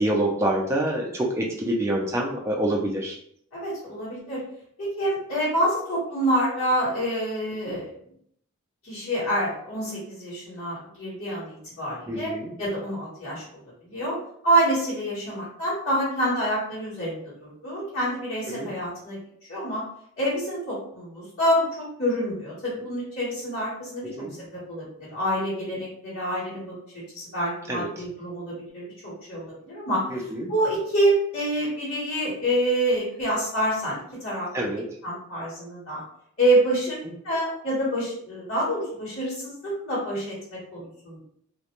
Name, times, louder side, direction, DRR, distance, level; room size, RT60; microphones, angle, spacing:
voice 1, 0.0-3.2 7.6-7.7 12.1-12.5 18.4-18.7 24.0-24.3 27.7-27.9 30.1-30.5 34.5-34.8, right 1 dB, 10° right, -2 dB, 0.3 m, -26 dB
voice 2, 3.5-4.4 4.8-7.9 8.8-12.3 12.6-13.4 13.8-14.2 14.4-19.2 19.5-19.8 20.2-34.5 35.0-36.0 36.4-37.0 37.2-41.2, right 1 dB, 65° left, -10 dB, 1.2 m, -27 dB
2.5 x 2.1 x 2.9 m, 0.67 s
head